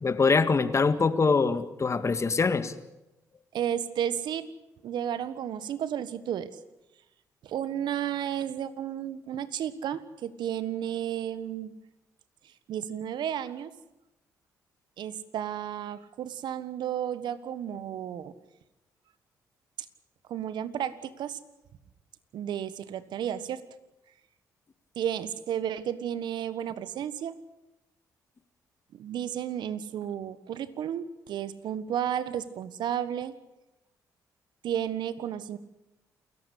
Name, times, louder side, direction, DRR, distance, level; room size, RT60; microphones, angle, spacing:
voice 1, 0.0-2.7, left 4 dB, 35° left, 11 dB, 1.9 m, -24 dB
voice 2, 3.5-4.5 4.8-6.5 7.4-11.7 12.7-13.7 15.0-18.3 20.3-21.4 22.3-23.6 24.9-27.4 29.0-33.4 34.6-35.6, right 10 dB, 70° right, 14 dB, 1.4 m, -32 dB
28.0 x 14.5 x 8.3 m, 0.95 s
hypercardioid pair, 50°, 8 cm